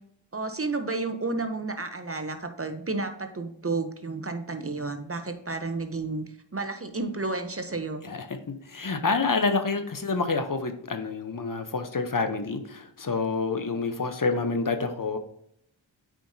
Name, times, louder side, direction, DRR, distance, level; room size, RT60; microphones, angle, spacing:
voice 1, 0.3-6.3 6.5-8.0, right 3 dB, 30° right, 7 dB, 0.8 m, -31 dB
voice 2, 8.7-15.2, left 4 dB, 45° left, 8 dB, 0.9 m, -28 dB
8.9 x 5.0 x 2.8 m, 0.70 s
cardioid pair, 45°, 46 cm